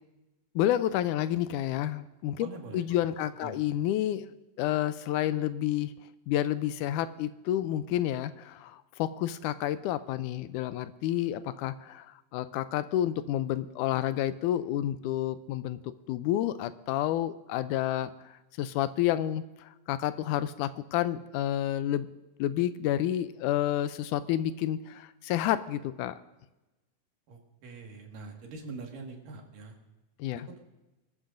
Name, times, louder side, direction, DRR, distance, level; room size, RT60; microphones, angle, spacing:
voice 1, 0.6-2.5 2.7-5.9 6.3-22.1 22.4-26.2 30.2-30.5, left 12 dB, 80° left, 13 dB, 2.0 m, -30 dB
voice 2, 2.4-3.0 3.4-3.6 27.3-29.7, right 4 dB, 80° right, 1 dB, 3.5 m, -44 dB
24.5 x 13.0 x 2.6 m, 1.1 s
omnidirectional pair, 3.8 m